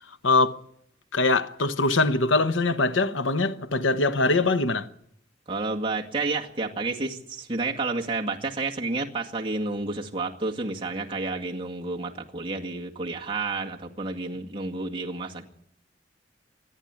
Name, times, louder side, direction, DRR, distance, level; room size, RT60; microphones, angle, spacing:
voice 1, 0.2-0.6 1.1-4.9, left 3 dB, 90° left, 1.1 m, -22 dB
voice 2, 5.5-15.4, right 3 dB, 25° right, 2.1 m, -30 dB
26.5 x 10.5 x 9.7 m
head